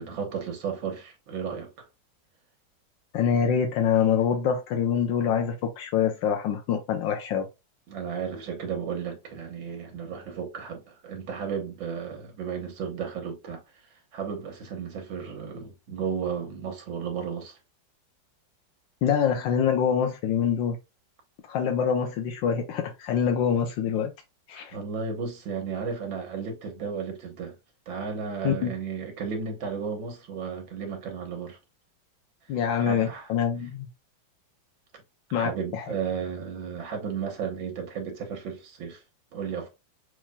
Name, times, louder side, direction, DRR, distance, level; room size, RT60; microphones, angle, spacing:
voice 1, 0.0-1.7 7.9-13.6 14.1-17.6 24.7-27.5 27.9-31.6 32.8-33.3 35.4-39.0 39.3-39.7, right 6 dB, 85° right, 2.0 m, -34 dB
voice 2, 3.1-7.5 19.0-20.8 21.5-24.1 24.5-24.8 28.4-28.7 32.5-33.9 35.3-35.9, left 7 dB, 90° left, 1.5 m, -25 dB
6.3 x 3.5 x 2.2 m
omnidirectional pair, 2.0 m